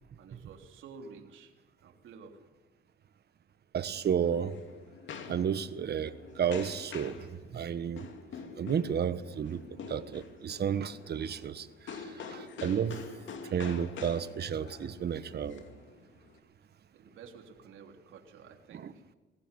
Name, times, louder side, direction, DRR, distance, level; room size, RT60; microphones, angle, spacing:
voice 1, 0.2-1.5 1.8-2.5 16.9-19.0, right 5 dB, 80° right, 3.4 m, -51 dB
voice 2, 3.7-4.6 5.3-7.3 7.5-8.1 8.6-9.6 9.9-13.0 13.5-15.6 18.8-18.9, right 8 dB, 55° right, 1.4 m, -32 dB
sound 1, 3.9-16.4, left 5 dB, 70° left, 2.5 m, -46 dB
22.5 x 15.5 x 9.9 m
cardioid pair, 90°, 20 cm